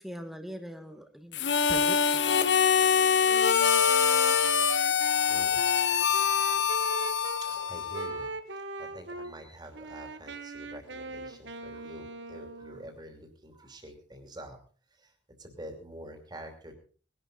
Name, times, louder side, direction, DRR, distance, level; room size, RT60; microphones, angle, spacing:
voice 1, 0.0-2.5, equal, ahead, 7 dB, 1.4 m, -42 dB
Harmonica, 1.3-8.3, left 7 dB, 75° left, 1.0 m, -24 dB
Wind instrument woodwind instrument, 3.2-7.4 7.9-9.3 9.7-13.0, right 3 dB, 90° right, 1.4 m, -40 dB
voice 2, 5.3-5.7 6.0-6.1 7.2-8.3 8.8-14.6 14.9-15.1 15.4-16.7, right 1 dB, 25° right, 5 dB, 2.8 m, -47 dB
20.0 x 11.5 x 4.0 m, 0.40 s
head